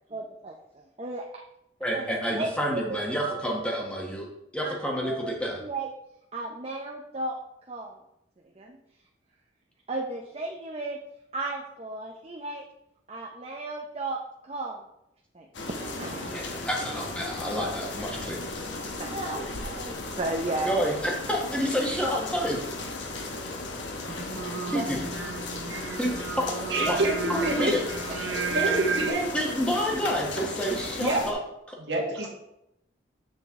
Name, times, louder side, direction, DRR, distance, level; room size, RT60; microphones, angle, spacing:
voice 1, 0.1-1.3 1.9-2.1 2.4-3.4 4.6-5.3 5.6-5.9 6.3-7.4 7.7-8.0 8.6-8.8 9.9-11.0 11.3-12.6 13.1-14.8 15.3-16.6 19.0-20.7 24.7-25.0 28.1-28.6, right 2 dB, 30° right, 1 dB, 0.6 m, -35 dB
voice 2, 1.8-4.3 4.5-5.6 16.2-18.5 20.6-22.6 24.7-25.0 26.0-27.0 27.3-27.8 28.6-28.8 29.3-31.4 31.7-31.8, equal, 5° left, -1 dB, 1.2 m, -29 dB
sound 1, 15.5-31.3, left 2 dB, 65° left, 1.2 m, -36 dB
Singing, 24.1-29.1, right 5 dB, 80° right, 0.8 m, -33 dB
voice 3, 26.7-27.7 28.5-29.2 31.0-31.2 31.8-32.3, right 2 dB, 60° right, 0 dB, 1.7 m, -27 dB
7.4 x 7.0 x 3.6 m, 0.83 s
head